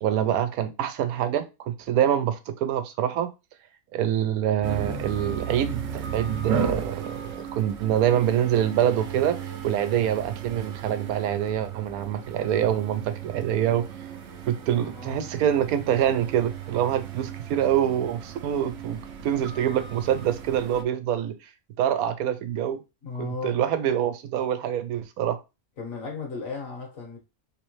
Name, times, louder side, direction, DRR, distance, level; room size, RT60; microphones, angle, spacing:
voice 1, 0.0-3.3 3.9-9.4 9.6-13.8 14.5-21.4 21.8-22.8 23.2-25.4, right 10 dB, 85° right, 1.1 m, -25 dB
sound 1, 4.6-20.8, right 7 dB, 60° right, 0.8 m, -35 dB
voice 2, 14.7-15.2 23.0-23.6 25.8-27.2, left 4 dB, 70° left, 1.7 m, -35 dB
3.5 x 3.1 x 3.1 m
omnidirectional pair, 1.5 m